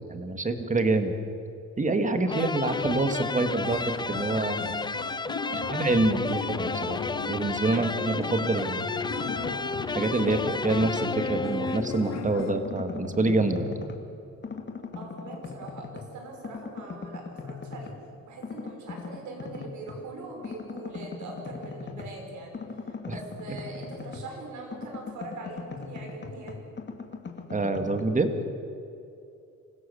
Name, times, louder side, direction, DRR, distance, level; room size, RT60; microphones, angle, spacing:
voice 1, 0.1-1.1 1.8-4.6 5.7-7.0 7.3-8.8 9.9-13.7 23.1-23.2 27.5-28.3, right 2 dB, 25° right, 7 dB, 2.1 m, -26 dB
sound 1, 2.3-12.2, left 3 dB, 15° left, 0.6 m, -33 dB
sound 2, 2.6-12.5, left 5 dB, 60° left, 2.1 m, -36 dB
voice 2, 5.4-5.8 7.7-8.0 14.9-17.9 18.2-22.6 23.0-26.6, right 2 dB, 75° right, 2 dB, 5.7 m, -42 dB
sound 3, 8.9-9.9 10.3-12.0 12.4-14.1 14.4-16.2 16.4-18.0 18.4-20.0 20.4-24.4 24.7-28.0, left 4 dB, 35° left, 2.5 m, -40 dB
26.0 x 16.0 x 7.1 m, 2.6 s
cardioid pair, 90°, 30 cm